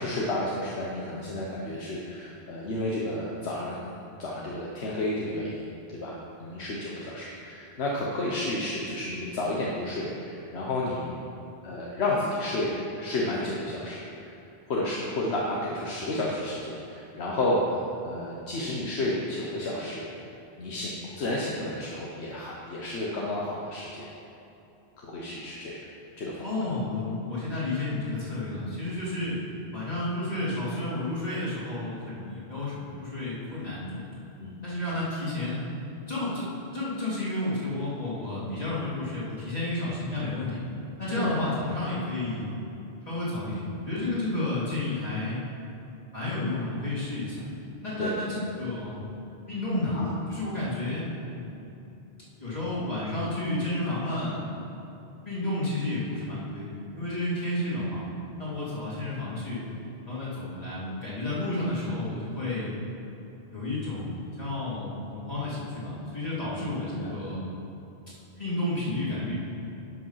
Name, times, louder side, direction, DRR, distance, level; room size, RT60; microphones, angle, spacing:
voice 1, 0.0-3.8 4.2-5.6 5.9-11.1 11.6-12.7 13.0-14.3 14.7-20.1 20.6-24.1 25.0-25.8 26.2-26.5 34.4-34.5 41.2-41.4 48.0-48.2 49.9-50.1 66.9-67.1, left 1 dB, 75° left, -4 dB, 1.3 m, -31 dB
voice 2, 26.4-29.4 29.7-34.3 34.6-35.6 36.1-40.6 41.0-42.5 43.1-45.4 46.1-47.4 47.8-49.0 49.5-50.0 50.3-51.9 52.4-54.5 55.2-58.0 58.4-59.6 60.0-62.7 63.5-67.5 68.3-69.3, left 2 dB, 35° left, -10 dB, 2.7 m, -31 dB
11.0 x 5.3 x 5.6 m, 2.9 s
omnidirectional pair, 1.1 m